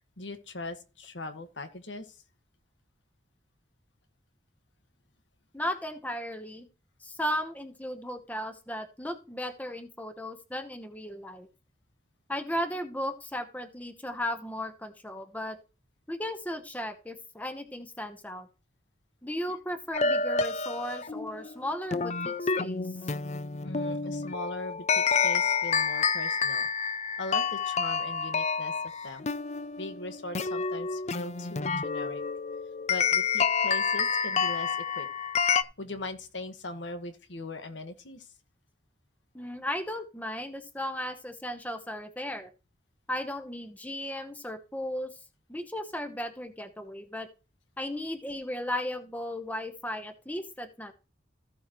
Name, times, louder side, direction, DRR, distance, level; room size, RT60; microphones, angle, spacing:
voice 1, 0.2-2.1 23.6-26.7 27.2-28.7 29.0-29.3 29.8-32.2 32.9-35.1 35.8-38.3, left 2 dB, 90° left, 1.6 m, -40 dB
voice 2, 5.5-6.7 7.0-11.5 12.3-15.6 16.1-18.5 19.2-22.9 39.3-42.5 43.1-45.1 45.5-47.3 47.8-50.9, left 1 dB, 10° left, 1.0 m, -35 dB
sound 1, 19.9-35.6, left 5 dB, 40° left, 0.5 m, -29 dB
15.0 x 7.1 x 3.1 m
head